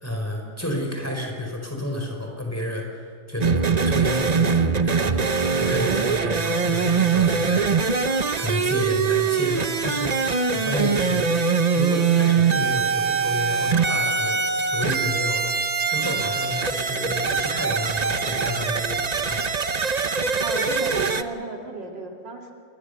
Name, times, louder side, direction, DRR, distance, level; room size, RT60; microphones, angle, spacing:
voice 1, 0.0-5.3 5.5-11.2 11.7-15.5 15.8-19.4, left 1 dB, 10° left, 1 dB, 4.8 m, -30 dB
sound 1, 3.4-21.2, right 5 dB, 40° right, 0.6 m, -23 dB
voice 2, 20.4-22.5, right 3 dB, 90° right, 1 dB, 3.4 m, -34 dB
27.5 x 21.5 x 6.8 m, 2.3 s
omnidirectional pair, 1.9 m